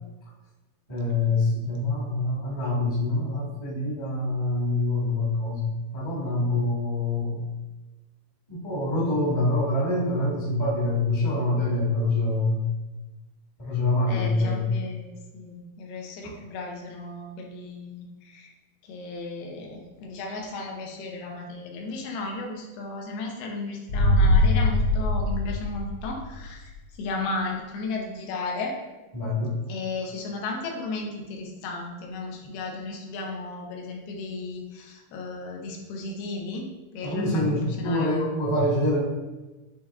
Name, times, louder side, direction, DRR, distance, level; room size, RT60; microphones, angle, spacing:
voice 1, 0.9-7.4 8.5-12.7 13.6-14.7 16.2-16.3 29.1-29.6 37.0-39.0, left 2 dB, 45° left, -7 dB, 0.3 m, -25 dB
voice 2, 14.1-18.5 18.8-26.7 27.0-28.8 29.7-36.7 36.9-38.1, left 3 dB, 90° left, 1 dB, 2.9 m, -35 dB
sound 1, 23.9-26.6 26.9-27.0, left 1 dB, 75° left, 1.4 m, -22 dB
8.9 x 3.2 x 3.6 m, 1.1 s
omnidirectional pair, 4.3 m